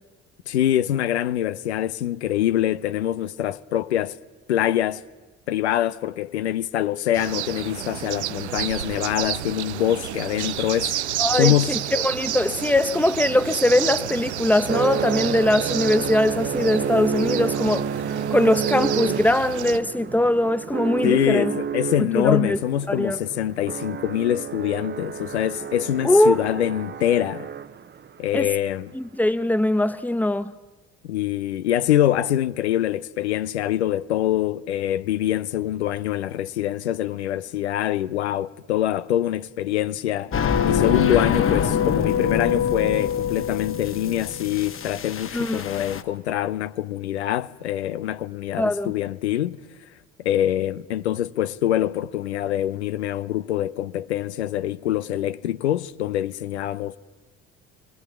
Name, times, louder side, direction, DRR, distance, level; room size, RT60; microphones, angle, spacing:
voice 1, 0.5-4.2 4.5-5.0 5.5-11.0 11.4-11.7 21.0-27.5 28.2-28.9 31.1-40.4 40.6-49.6 50.2-57.0, left 12 dB, 80° left, 0.7 m, -24 dB
sound 1, 7.1-19.8, right 11 dB, 85° right, 0.6 m, -30 dB
voice 2, 11.2-17.9 18.3-21.5 22.1-22.6 22.9-23.2 26.0-26.4 28.3-28.5 28.9-30.5 45.3-45.6 48.6-48.9, left 1 dB, 5° left, 1.2 m, -21 dB
sound 2, 12.1-28.1, right 7 dB, 30° right, 1.0 m, -30 dB
sound 3, 40.3-46.0, left 8 dB, 40° left, 1.6 m, -24 dB
25.0 x 19.5 x 7.1 m
figure-of-eight pair, 50°, 33 cm